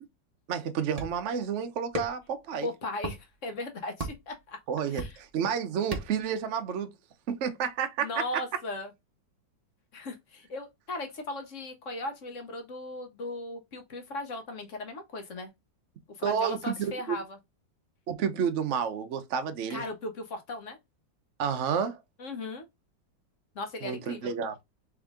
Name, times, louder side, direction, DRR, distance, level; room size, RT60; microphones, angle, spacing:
voice 1, 0.5-2.7 4.7-6.9 7.3-8.1 16.2-17.2 18.1-19.8 21.4-22.0 23.8-24.5, right 7 dB, 80° right, 0.6 m, -30 dB
sound 1, 1.0-1.3 1.9-2.3 3.0-3.2 4.0-4.3 5.0-5.4 5.9-6.3, right 1 dB, 30° right, 0.8 m, -35 dB
voice 2, 2.6-4.6 4.9-5.2 8.0-8.9 9.9-15.5 16.1-17.4 19.7-20.8 22.2-22.7 23.5-24.3, left 2 dB, 55° left, 0.9 m, -37 dB
3.6 x 3.5 x 3.5 m
omnidirectional pair, 2.1 m